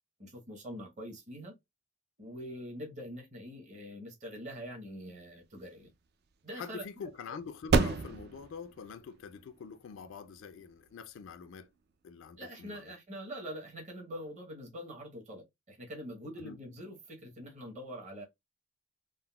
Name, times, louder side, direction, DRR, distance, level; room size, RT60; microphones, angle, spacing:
voice 1, 0.2-1.5 2.2-5.9 6.4-6.8 7.3-7.4 12.4-18.2, equal, 35° right, 0.9 m, -44 dB
sound 1, 5.1-12.4, right 4 dB, 55° right, 0.3 m, -35 dB
voice 2, 6.5-11.7 12.0-12.9 16.4-16.6, left 6 dB, 70° left, 0.3 m, -45 dB
3.6 x 2.0 x 2.2 m
head